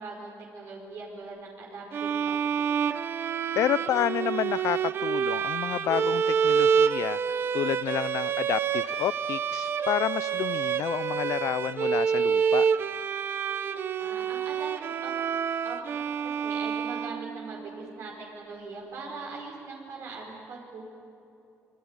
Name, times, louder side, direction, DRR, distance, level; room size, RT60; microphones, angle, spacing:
voice 1, 0.0-2.7 14.0-15.1 15.6-15.8 16.2-20.8, right 3 dB, 65° right, -1 dB, 4.9 m, -41 dB
sound 1, 1.9-17.6, right 7 dB, 45° right, 0.8 m, -28 dB
voice 2, 3.6-12.7, left 12 dB, 70° left, 19 dB, 0.5 m, -30 dB
25.0 x 23.0 x 9.7 m, 2.8 s
cardioid pair, 155°, 5 cm